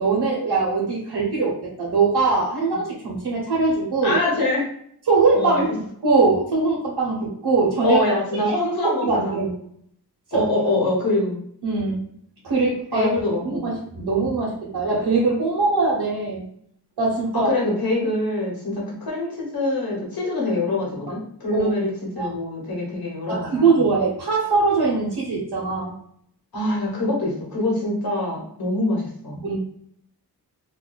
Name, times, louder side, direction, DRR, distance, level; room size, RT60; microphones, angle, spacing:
voice 1, 0.0-4.2 5.1-8.0 8.4-9.5 10.3-10.5 11.6-12.1 12.4-13.1 13.4-16.4 17.0-17.5 21.5-21.8 22.2-22.3 23.3-26.0 29.4-29.6, right 4 dB, 80° right, -5 dB, 1.0 m, -22 dB
voice 2, 4.0-4.7 5.3-5.6 7.8-9.4 10.3-11.3 12.9-13.6 17.3-21.9 22.1-23.8 26.5-29.4, left 2 dB, 65° left, -3 dB, 1.3 m, -24 dB
2.7 x 2.2 x 3.9 m, 0.65 s
wide cardioid pair, 155°, 38 cm